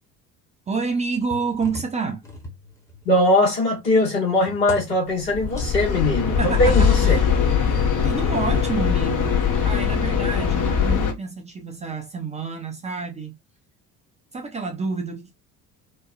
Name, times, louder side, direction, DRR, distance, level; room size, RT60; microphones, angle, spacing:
voice 1, 0.7-2.2 6.4-7.3 7.6-13.4 14.3-15.3, right 4 dB, 15° right, 0.4 m, -29 dB
sound 1, 1.3-3.3 3.7-5.7 6.7-7.6 8.3-8.4, left 1 dB, 5° left, 0.9 m, -39 dB
voice 2, 3.0-7.2, left 1 dB, 80° left, 1.4 m, -20 dB
sound 2, 5.2-11.1, left 7 dB, 40° left, 0.8 m, -21 dB
2.9 x 2.2 x 2.4 m
figure-of-eight pair, 55°, 47 cm